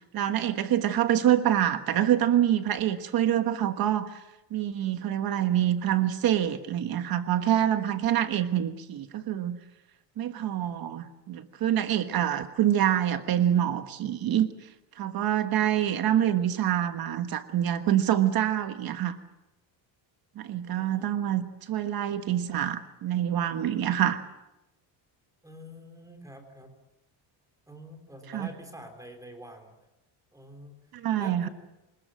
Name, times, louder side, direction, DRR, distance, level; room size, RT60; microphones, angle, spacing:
voice 1, 0.0-4.2 4.5-9.6 10.2-14.5 15.0-19.2 20.4-24.2 28.3-28.5 30.9-31.5, right 11 dB, 50° right, 9 dB, 1.4 m, -26 dB
voice 2, 20.8-21.2 25.4-26.8 27.7-29.8 30.3-30.8 31.1-31.5, equal, 5° right, 4 dB, 3.6 m, -46 dB
26.5 x 20.0 x 7.7 m, 0.94 s
cardioid pair, 160°, 47 cm